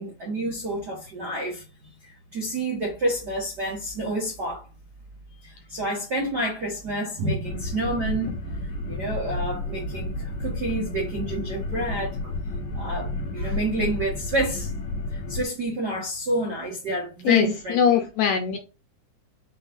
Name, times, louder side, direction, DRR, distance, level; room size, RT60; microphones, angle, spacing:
voice 1, 0.0-1.6 2.0-4.7 5.4-8.4 8.9-12.3 12.7-14.7 15.1-18.0, right 1 dB, 75° right, 0.9 m, -29 dB
sound 1, 7.4-15.4, left 2 dB, 55° left, 1.8 m, -31 dB
voice 2, 17.2-18.6, left 8 dB, 80° left, 1.7 m, -21 dB
5.6 x 3.7 x 2.6 m
omnidirectional pair, 3.9 m